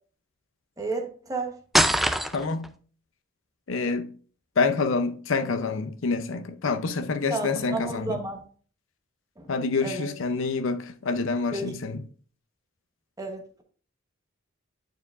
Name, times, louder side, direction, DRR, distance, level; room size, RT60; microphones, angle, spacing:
voice 1, 0.8-1.6 7.3-8.4 9.4-9.5 9.8-10.1 11.5-11.7 13.2-13.6, right 2 dB, 15° right, 1.0 m, -32 dB
sound 1, 1.7-2.7, right 1 dB, ahead, 0.3 m, -22 dB
voice 2, 2.3-2.7 3.7-4.1 4.6-8.2 9.5-12.0, left 4 dB, 65° left, 0.6 m, -27 dB
9.3 x 4.6 x 2.4 m
head